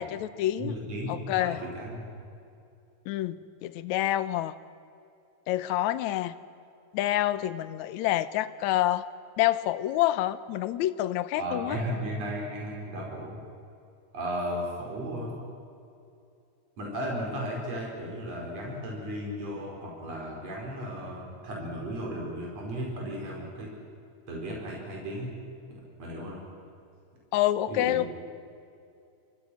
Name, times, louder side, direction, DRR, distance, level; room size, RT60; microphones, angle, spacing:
voice 1, 0.0-0.8 1.1-1.6 3.1-4.5 5.5-6.3 6.9-9.0 9.4-11.8 27.3-28.1, left 14 dB, 80° left, 14 dB, 2.2 m, -27 dB
voice 2, 0.6-2.1 11.4-13.4 14.1-15.4 16.8-23.7 24.3-25.3 26.0-26.5 27.7-28.0, equal, 60° right, -2 dB, 6.0 m, -35 dB
29.0 x 24.0 x 6.3 m, 2.5 s
omnidirectional pair, 3.4 m